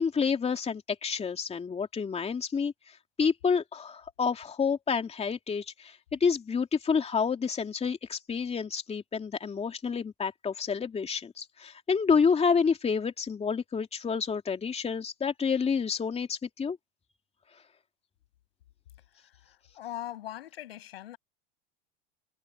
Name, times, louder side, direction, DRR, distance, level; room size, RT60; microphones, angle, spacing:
voice 1, 0.0-2.7 3.2-16.8, left 6 dB, 20° left, 2.8 m, -29 dB
voice 2, 19.7-21.2, left 13 dB, 85° left, 7.3 m, -40 dB
supercardioid pair, 105°, 29 cm